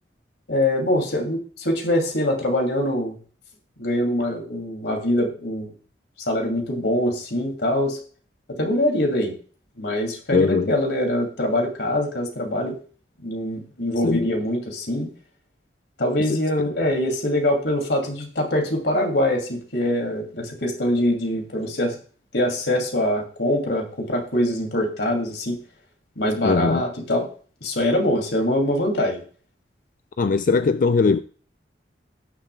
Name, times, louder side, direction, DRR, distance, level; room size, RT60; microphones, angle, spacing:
voice 1, 0.5-3.2 3.8-5.7 6.3-8.0 8.6-9.3 9.8-12.8 13.2-15.1 16.0-22.0 22.3-25.6 26.2-27.3 27.6-29.2, left 1 dB, 70° left, 2.7 m, -23 dB
voice 2, 10.3-10.7 14.0-14.3 16.3-16.4 26.4-26.8 30.2-31.2, left 4 dB, 50° left, 0.4 m, -20 dB
17.5 x 6.7 x 2.3 m
head